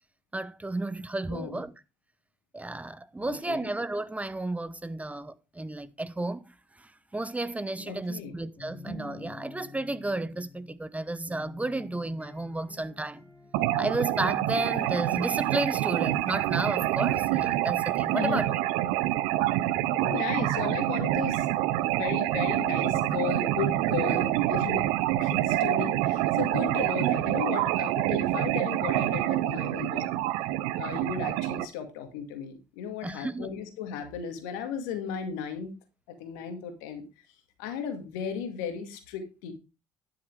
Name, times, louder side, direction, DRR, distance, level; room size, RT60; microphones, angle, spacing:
voice 1, 0.3-1.7 2.5-6.5 6.8-13.2 13.8-18.5 24.1-24.2 33.0-33.5, right 2 dB, 15° right, 0.9 m, -32 dB
voice 2, 3.2-3.7 7.9-8.3 18.2-18.4 20.0-21.4 21.8-30.1 30.8-35.7 36.2-37.0 37.6-39.5, left 7 dB, 85° left, 2.2 m, -35 dB
sound 1, 7.7-24.4, left 3 dB, 15° left, 4.6 m, -49 dB
sound 2, 13.5-31.6, right 15 dB, 80° right, 0.7 m, -27 dB
11.0 x 6.6 x 4.7 m
hypercardioid pair, 60°, 10 cm